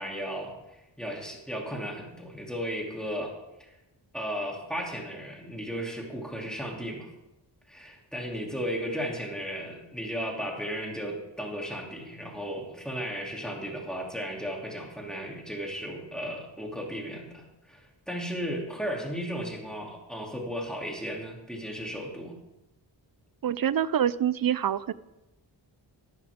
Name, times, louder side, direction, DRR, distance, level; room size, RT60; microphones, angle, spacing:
voice 1, 0.0-3.7 4.1-7.1 7.7-22.4, equal, ahead, -1 dB, 2.9 m, -35 dB
voice 2, 23.4-24.9, right 9 dB, 50° right, 18 dB, 0.5 m, -26 dB
13.5 x 11.0 x 3.6 m, 0.94 s
cardioid pair, 60°, 45 cm